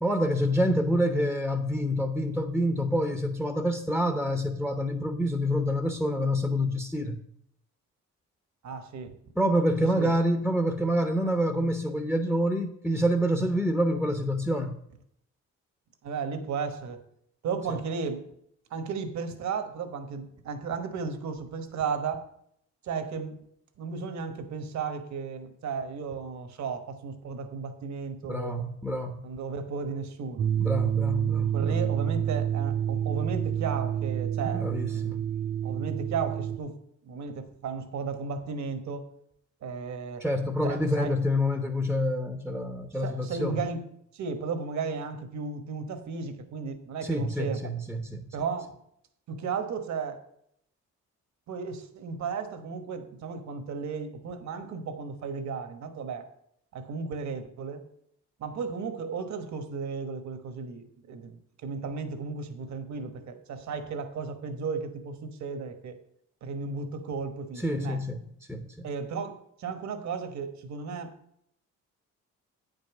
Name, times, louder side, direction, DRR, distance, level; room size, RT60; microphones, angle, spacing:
voice 1, 0.0-7.2 9.4-14.8 17.7-17.8 28.3-29.2 30.6-31.7 34.5-35.2 40.2-43.6 47.0-48.3 67.6-68.9, equal, ahead, 6 dB, 0.8 m, -27 dB
voice 2, 8.6-9.2 10.0-10.1 16.0-17.0 17.4-18.2 18.7-22.2 22.8-23.4 23.8-28.6 29.2-30.5 31.5-34.7 34.9-35.1 35.6-36.8 37.0-39.1 39.6-40.2 40.6-41.1 43.0-43.8 44.1-47.6 48.3-48.7 49.3-50.2 51.5-56.3 56.7-57.9 58.4-66.0 66.4-68.0 68.8-71.1, right 5 dB, 65° right, 8 dB, 1.2 m, -34 dB
sound 1, 30.4-36.6, right 9 dB, 35° right, 0.4 m, -28 dB
8.8 x 5.4 x 6.0 m, 0.71 s
cardioid pair, 90°, 30 cm